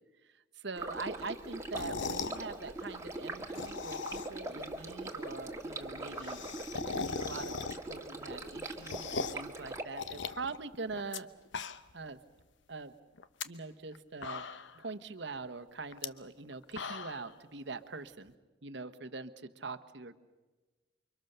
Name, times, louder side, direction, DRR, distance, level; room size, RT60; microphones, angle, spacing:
voice 1, 0.6-6.4 6.7-11.3 11.9-12.2 12.7-12.9 13.4-14.4 14.7-18.3 18.6-20.1, right 3 dB, 65° right, 11 dB, 1.1 m, -43 dB
Stream, 0.8-9.8, right 2 dB, 15° right, 1.7 m, -42 dB
Slurp Sup Sip, 1.6-2.4 3.4-4.5 4.8-4.9 5.2-5.3 5.5-5.6 5.8-8.0 8.4-9.5 10.0-11.2 11.5-12.0 12.4-12.5 13.2-13.4 13.9-14.0 14.2-14.8 15.9-16.1 16.5-17.3, left 5 dB, 75° left, 0.9 m, -39 dB
29.5 x 24.0 x 6.8 m, 1.2 s
head